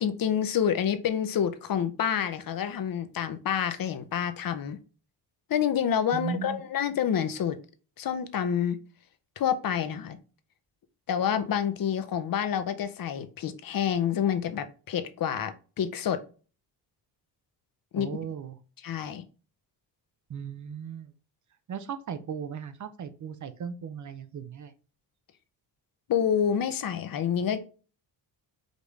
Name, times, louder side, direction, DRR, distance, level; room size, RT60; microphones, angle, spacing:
voice 1, 0.0-4.8 5.5-7.6 8.0-8.8 9.4-10.2 11.1-15.5 15.8-16.2 17.9-18.1 18.8-19.2 26.1-27.7, left 8 dB, 50° left, 0.7 m, -28 dB
voice 2, 6.1-6.6 18.0-18.6 20.3-21.1 21.7-24.7, right 7 dB, 45° right, 0.6 m, -37 dB
5.2 x 2.5 x 3.2 m
cardioid pair, 95°, 43 cm